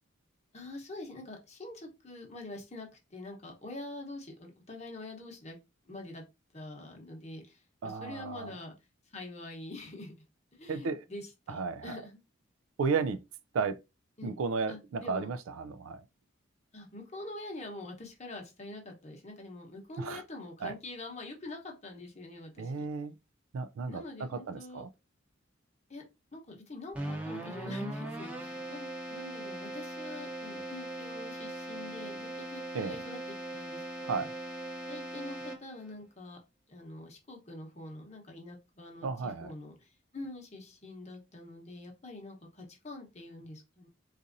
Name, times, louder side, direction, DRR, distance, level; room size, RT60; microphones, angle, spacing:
voice 1, 0.5-5.6 5.9-6.2 6.5-8.7 9.1-10.1 10.5-12.2 14.2-14.4 14.7-15.3 16.7-22.9 23.9-24.8 25.9-33.2 33.5-34.3 34.9-36.4 36.7-43.9, left 2 dB, 35° left, 0.9 m, -45 dB
voice 2, 7.8-8.6 10.7-11.0 11.5-12.0 12.8-13.2 13.5-13.8 14.2-16.0 20.0-20.2 20.6-20.8 22.6-23.1 23.5-24.9 32.7-33.0 34.0-34.3 39.0-39.5, right 4 dB, 85° right, 0.3 m, -34 dB
Keyboard (musical), 26.9-35.9, right 1 dB, 5° right, 0.7 m, -40 dB
4.0 x 2.5 x 2.5 m
head